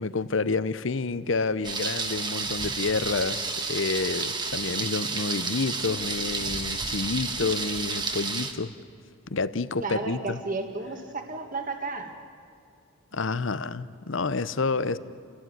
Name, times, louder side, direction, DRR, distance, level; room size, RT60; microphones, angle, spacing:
voice 1, 0.0-8.7 9.3-10.4 13.1-15.0, left 4 dB, 65° left, 15 dB, 0.8 m, -29 dB
Thunder, 1.6-8.5, right 4 dB, 20° right, 1.4 m, -31 dB
voice 2, 9.8-12.1, right 3 dB, 40° right, 4 dB, 1.8 m, -33 dB
28.0 x 17.0 x 9.5 m, 2.3 s
head